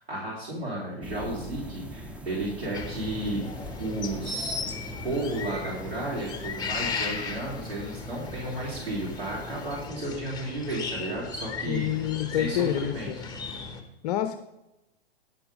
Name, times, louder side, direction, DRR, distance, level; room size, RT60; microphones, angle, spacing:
voice 1, 0.1-3.4 3.8-4.5 5.0-13.1, right 1 dB, 80° right, -6 dB, 3.5 m, -33 dB
sound 1, 1.0-9.9, right 1 dB, 5° right, 0.5 m, -42 dB
sound 2, 2.7-13.8, left 4 dB, 10° left, 1.1 m, -37 dB
voice 2, 11.7-13.2 14.0-14.4, left 11 dB, 40° left, 10 dB, 0.6 m, -28 dB
10.5 x 6.9 x 5.1 m, 0.92 s
hypercardioid pair, 115°, 32 cm